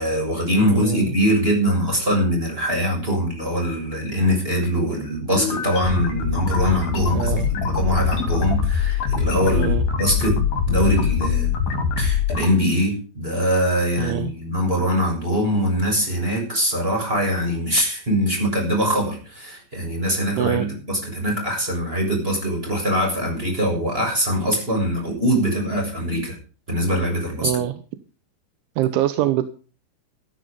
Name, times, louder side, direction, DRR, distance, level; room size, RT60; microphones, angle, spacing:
voice 1, 0.0-11.5 12.0-26.4 26.7-27.5, equal, 10° right, 1 dB, 6.9 m, -22 dB
voice 2, 0.6-1.1 7.1-7.5 9.5-9.8 14.0-14.3 20.4-20.7 27.4-27.8 28.8-29.5, right 13 dB, 85° right, 11 dB, 3.3 m, -24 dB
sound 1, 5.3-12.5, left 6 dB, 55° left, 4.2 m, -23 dB
14.5 x 13.0 x 5.1 m, 0.38 s
omnidirectional pair, 5.3 m